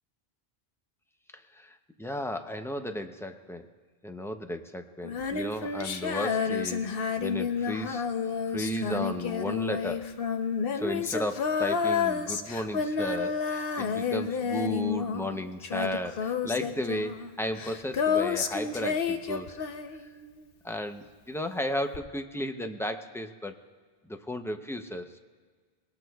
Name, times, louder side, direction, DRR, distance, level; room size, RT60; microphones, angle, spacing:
voice 1, 1.3-3.7 4.0-6.9 7.2-8.0 8.5-10.1 10.7-19.6 20.0-20.1 20.6-23.6 24.1-25.2, left 1 dB, 5° left, 6 dB, 0.5 m, -34 dB
Female singing, 5.0-20.4 21.9-22.0, left 6 dB, 65° left, 0.9 m, -30 dB
22.0 x 19.0 x 2.3 m, 1.5 s
omnidirectional pair, 1.0 m